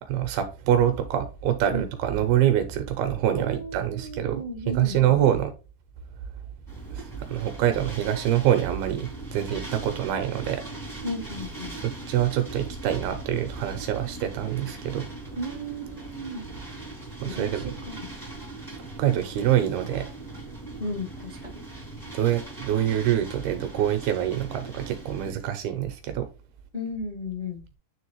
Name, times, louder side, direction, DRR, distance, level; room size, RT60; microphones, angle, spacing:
voice 1, 0.0-5.5 6.9-10.6 11.8-15.1 17.2-17.7 19.0-20.1 22.1-26.3, right 11 dB, 80° right, 2.4 m, -25 dB
voice 2, 3.4-5.2 11.0-11.8 15.3-16.5 17.2-18.1 20.8-21.6 26.7-27.6, left 1 dB, 85° left, 0.6 m, -35 dB
sound 1, 6.7-25.3, right 2 dB, 25° left, 0.5 m, -40 dB
9.4 x 3.4 x 3.0 m
omnidirectional pair, 5.0 m